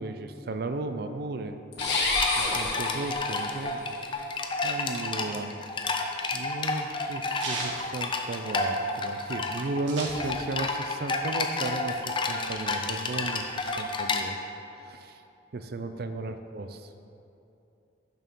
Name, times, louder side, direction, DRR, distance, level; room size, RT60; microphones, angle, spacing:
voice 1, 0.0-1.6 2.4-3.9 4.2-5.5 6.3-14.4 14.7-15.2 15.5-16.8, right 3 dB, 55° right, 9 dB, 0.4 m, -35 dB
sound 1, 1.7-3.7, left 2 dB, 60° left, 1.3 m, -29 dB
sound 2, 1.8-14.2, left 3 dB, 25° left, 0.4 m, -31 dB
sound 3, 5.7-8.8 9.2-9.3 9.4-10.7 11.1-12.2, right 3 dB, 90° right, 1.4 m, -37 dB
6.4 x 6.4 x 5.3 m, 2.8 s
head